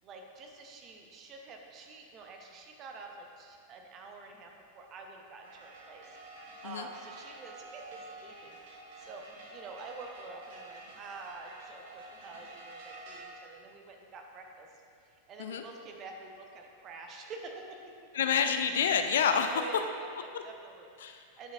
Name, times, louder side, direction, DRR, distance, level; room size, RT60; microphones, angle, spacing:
voice 1, 0.0-6.1 6.6-14.7 15.0-18.1 19.5-21.5, right 3 dB, 30° right, 2 dB, 0.7 m, -47 dB
sound 1, 5.4-13.2, right 2 dB, 55° right, 1.0 m, -49 dB
voice 2, 18.1-19.5 20.3-20.4 21.0-21.2, left 7 dB, 60° left, 7 dB, 0.3 m, -28 dB
8.8 x 5.1 x 2.4 m, 2.2 s
figure-of-eight pair, 90°, 0 cm